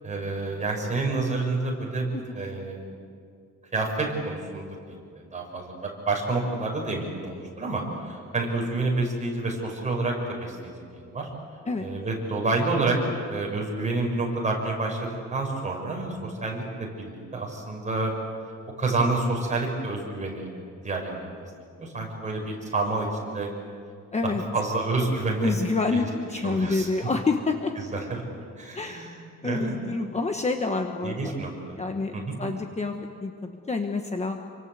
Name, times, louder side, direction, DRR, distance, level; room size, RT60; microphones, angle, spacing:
voice 1, 0.0-3.0 3.7-11.3 11.8-13.0 13.3-18.1 18.8-20.5 20.8-21.4 21.8-23.5 24.2-25.5 25.9-26.1 26.4-26.9 27.8-28.2 28.6-29.7 31.0-31.8 32.1-32.4, right 3 dB, 25° right, -1 dB, 6.1 m, -29 dB
voice 2, 24.1-24.4 25.4-27.7 28.7-29.1 29.4-31.4 31.8-32.9 33.2-34.4, left 3 dB, 20° left, 4 dB, 1.2 m, -28 dB
28.0 x 25.0 x 8.2 m, 2.3 s
wide cardioid pair, 175°, 30 cm